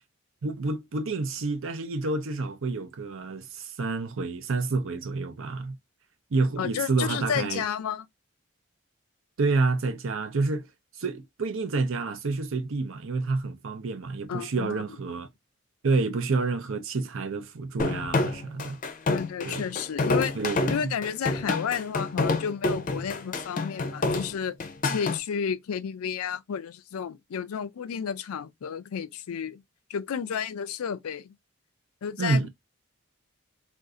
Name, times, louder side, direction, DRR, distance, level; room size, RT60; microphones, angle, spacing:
voice 1, 0.4-5.7 6.3-7.6 9.4-10.7 11.0-15.3 15.8-18.8 19.4-19.7 20.4-20.9 32.2-32.5, right 3 dB, 65° right, 0.6 m, -28 dB
voice 2, 6.6-8.1 14.3-14.8 19.1-20.3 20.7-24.6 24.9-29.6 29.9-31.3 32.0-32.5, left 7 dB, 90° left, 0.4 m, -32 dB
sound 1, 17.8-25.2, left 3 dB, 40° left, 0.5 m, -28 dB
2.6 x 2.4 x 3.6 m
head